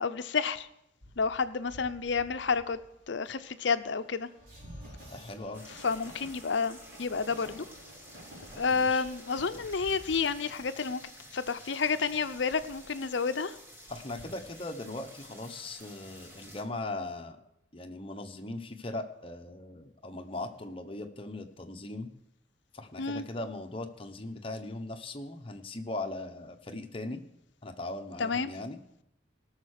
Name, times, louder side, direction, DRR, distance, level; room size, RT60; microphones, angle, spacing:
voice 1, 0.0-0.7 1.2-2.8 3.1-4.3 5.8-7.6 8.6-11.0 11.3-13.5 23.0-23.2 28.2-28.5, left 5 dB, 65° left, 11 dB, 0.6 m, -30 dB
Train, 1.0-11.4, equal, 50° right, 4.6 m, -51 dB
voice 2, 5.1-5.6 8.7-9.1 13.9-17.4 17.7-22.1 22.7-27.2 27.6-28.8, left 2 dB, 30° left, 5 dB, 1.0 m, -39 dB
sound 1, 5.5-16.6, equal, 10° right, 1.9 m, -51 dB
17.5 x 6.5 x 6.5 m, 0.81 s
head